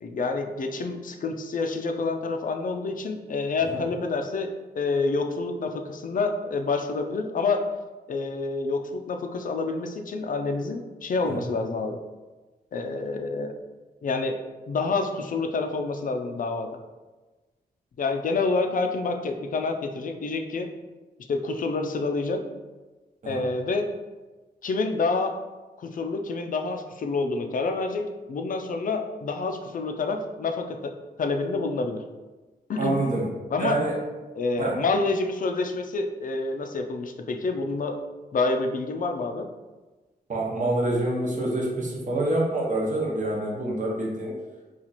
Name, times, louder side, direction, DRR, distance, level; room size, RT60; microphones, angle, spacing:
voice 1, 0.0-7.6 8.1-12.0 12.7-13.5 14.0-14.4 14.7-16.7 18.0-20.7 21.3-22.4 23.2-23.9 24.6-25.3 25.9-30.9 31.2-32.0 32.7-33.0 33.5-33.8 34.4-38.0 38.3-39.5, left 3 dB, 55° left, 5 dB, 0.4 m, -28 dB
voice 2, 32.8-33.2 33.6-34.0 34.6-34.8 40.3-44.3, right 2 dB, 50° right, -3 dB, 0.9 m, -26 dB
2.9 x 2.4 x 4.0 m, 1.2 s
cardioid pair, 70°, 16 cm